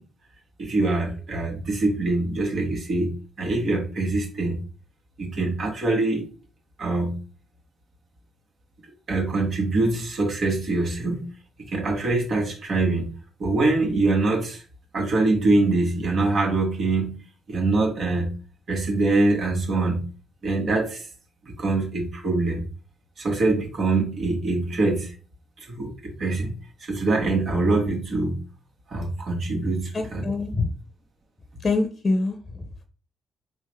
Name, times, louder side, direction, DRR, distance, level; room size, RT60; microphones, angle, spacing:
voice 1, 0.6-4.6 5.2-6.2 6.8-7.2 9.1-11.3 11.6-13.1 13.4-14.6 14.9-17.2 17.5-18.3 18.7-20.0 20.4-21.1 21.4-22.7 23.2-25.1 25.6-28.4 28.9-30.2, right 2 dB, 55° right, 1.7 m, -24 dB
voice 2, 29.9-30.7 31.6-32.8, left 3 dB, 40° left, 0.7 m, -25 dB
3.7 x 2.4 x 4.6 m
hypercardioid pair, 45°, 0 cm